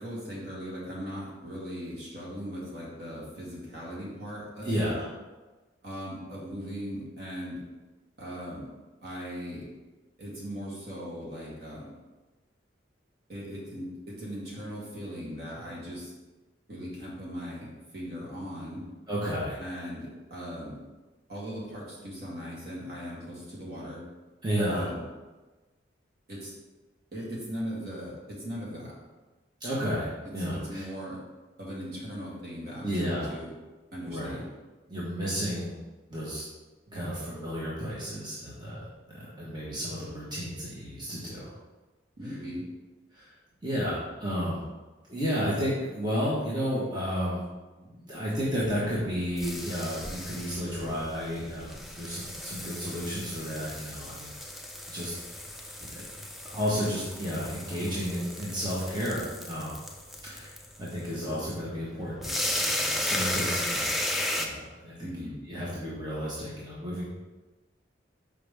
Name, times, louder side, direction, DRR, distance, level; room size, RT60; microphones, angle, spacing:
voice 1, 0.0-5.0 5.8-7.6 8.2-8.7 9.0-9.7 10.2-11.9 13.3-16.1 16.7-18.8 19.6-20.8 21.3-24.0 24.7-25.0 26.3-26.5 27.1-28.9 30.2-31.2 31.6-33.5 33.9-34.5 42.2-42.7 65.0-65.4, equal, 50° right, -5 dB, 2.0 m, -39 dB
voice 2, 4.6-5.0 19.1-19.6 24.4-24.9 29.6-30.8 32.8-33.3 34.1-34.4 34.9-35.7 36.1-36.4 36.9-38.8 39.4-41.5 42.2-42.4 43.1-43.3 43.6-44.6 45.1-47.4 47.8-54.3 54.9-55.1 55.8-55.9 56.5-59.8 60.2-64.0 64.3-67.0, equal, 20° right, -8 dB, 1.3 m, -32 dB
sound 1, 48.6-64.5, left 1 dB, ahead, 0.4 m, -35 dB
6.8 x 5.1 x 3.4 m, 1.2 s
head